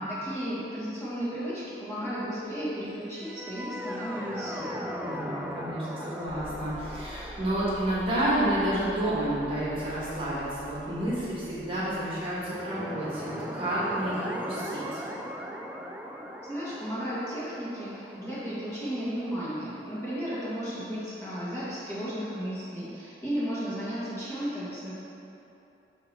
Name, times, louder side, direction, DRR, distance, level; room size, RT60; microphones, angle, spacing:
voice 1, 0.0-4.9 16.4-24.9, equal, 15° left, -10 dB, 1.5 m, -34 dB
sound 1, 3.2-10.4 12.3-20.1, equal, 10° right, 0.3 m, -39 dB
voice 2, 5.0-15.0, right 1 dB, 30° right, -8 dB, 1.5 m, -30 dB
sound 2, 6.3-12.4, equal, 45° left, 1.3 m, -47 dB
8.4 x 2.9 x 6.0 m, 2.8 s
head